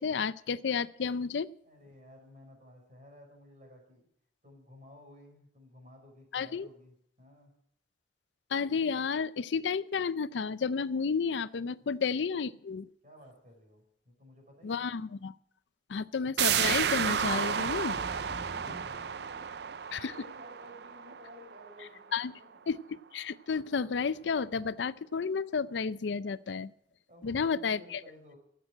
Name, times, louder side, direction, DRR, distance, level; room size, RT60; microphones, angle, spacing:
voice 1, 0.0-1.5 6.3-6.7 8.5-12.9 14.6-15.3 15.9-18.0 19.9-20.1 22.1-22.3 22.7-22.8 23.1-26.7 27.2-28.0, left 5 dB, 85° left, 17 dB, 0.5 m, -31 dB
voice 2, 1.6-4.1 4.4-7.5 11.8-11.9 13.0-15.0 18.3-22.7 27.1-28.4, left 1 dB, 45° right, 1 dB, 5.4 m, -55 dB
sound 1, 16.4-21.9 22.2-22.3, right 8 dB, 65° right, 0.5 m, -32 dB
sound 2, 17.7-19.9, equal, 40° left, 1.7 m, -47 dB
13.5 x 8.1 x 8.7 m, 0.71 s
head